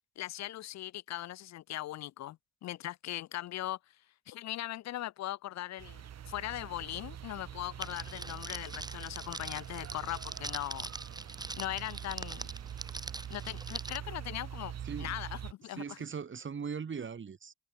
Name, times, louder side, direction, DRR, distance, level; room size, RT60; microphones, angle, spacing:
voice 1, 0.2-3.8 4.3-10.9 11.5-12.5 13.3-16.0, left 14 dB, 65° left, 0.6 m, -40 dB
sound 1, 5.8-15.5, right 9 dB, 60° right, 2.7 m, -44 dB
Crackle, 7.8-14.0, right 2 dB, 15° right, 2.5 m, -43 dB
voice 2, 15.7-17.5, right 6 dB, 40° right, 3.8 m, -39 dB
cardioid pair, 90°, 30 cm